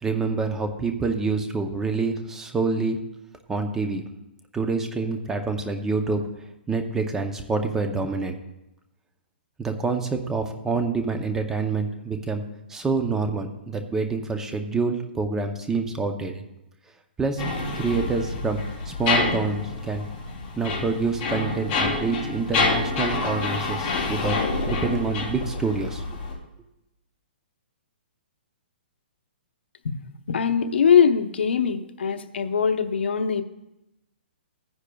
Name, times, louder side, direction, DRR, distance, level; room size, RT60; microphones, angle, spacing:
voice 1, 0.0-3.0 3.5-4.0 4.5-6.2 6.7-8.4 9.6-12.4 12.7-16.4 17.2-17.4 17.8-20.1 20.6-26.0, right 4 dB, 10° right, 6 dB, 0.6 m, -27 dB
sound 1, 17.4-26.3, left 3 dB, 25° left, 2.9 m, -27 dB
voice 2, 30.3-33.4, left 7 dB, 80° left, 7 dB, 0.9 m, -21 dB
16.0 x 9.9 x 2.3 m, 0.92 s
hypercardioid pair, 160°, 6 cm